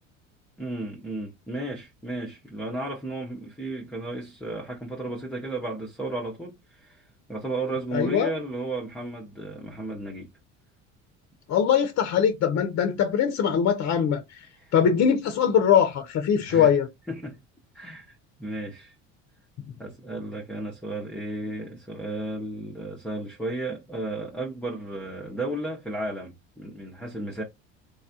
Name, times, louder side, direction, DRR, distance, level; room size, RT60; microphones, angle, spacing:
voice 1, 0.6-10.3 14.5-14.7 16.4-16.7 17.1-17.4 17.7-18.9 19.8-27.4, right 2 dB, ahead, 0.6 m, -34 dB
voice 2, 7.9-8.3 11.5-14.2 14.7-16.9, left 8 dB, 45° left, 0.6 m, -22 dB
3.3 x 2.3 x 2.7 m
supercardioid pair, 85°, 36 cm